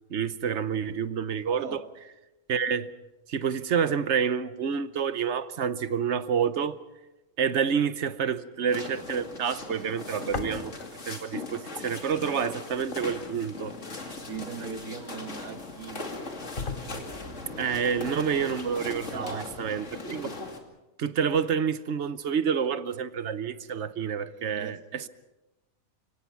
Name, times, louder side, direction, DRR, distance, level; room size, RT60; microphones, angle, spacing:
voice 1, 0.1-1.8 2.5-2.9 3.3-6.8 7.4-10.7 11.1-13.7 17.6-20.4 21.0-25.1, right 7 dB, 55° right, 1.1 m, -28 dB
sound 1, 8.7-20.6, left 3 dB, 55° left, 2.8 m, -39 dB
sound 2, 10.3-11.1 11.4-15.4 15.9-16.0 16.6-17.4, left 4 dB, 35° left, 1.5 m, -40 dB
voice 2, 14.3-16.1 18.9-19.5 24.2-25.1, right 5 dB, 75° right, 2.0 m, -40 dB
29.5 x 17.5 x 5.9 m
omnidirectional pair, 1.5 m